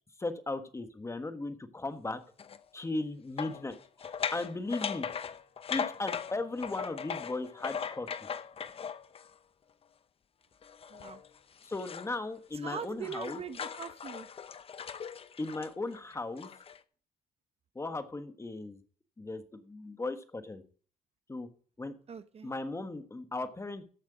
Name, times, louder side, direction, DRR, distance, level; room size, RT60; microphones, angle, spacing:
voice 1, 0.2-2.2 2.7-5.1 5.7-8.1 11.6-13.4 15.4-16.5 17.7-18.8 19.2-20.6 21.3-21.5 21.8-21.9 22.4-23.9, left 2 dB, 15° left, 9 dB, 1.4 m, -37 dB
sound 1, 2.4-2.6 3.4-9.3 10.6-12.2 12.5-16.8, left 7 dB, 35° left, 0.8 m, -39 dB
voice 2, 10.9-11.2 12.6-14.3 22.1-22.5, right 6 dB, 35° right, 11 dB, 0.9 m, -41 dB
14.0 x 8.1 x 4.9 m, 0.42 s
cardioid pair, 110°, 17 cm